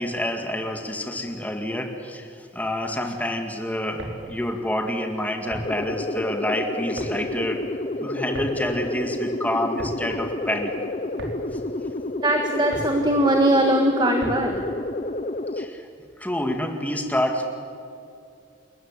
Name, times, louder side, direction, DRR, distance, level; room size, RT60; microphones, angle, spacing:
voice 1, 0.0-7.6 8.0-10.7 15.5-15.9 16.2-17.5, left 1 dB, 10° left, 4 dB, 2.0 m, -28 dB
sound 1, 4.0-14.7, right 1 dB, 75° right, 4.4 m, -39 dB
sound 2, 5.6-15.7, left 1 dB, 35° left, 0.8 m, -30 dB
voice 2, 12.2-14.6, right 1 dB, 25° right, 3 dB, 1.6 m, -20 dB
28.5 x 14.5 x 9.9 m, 2.6 s
head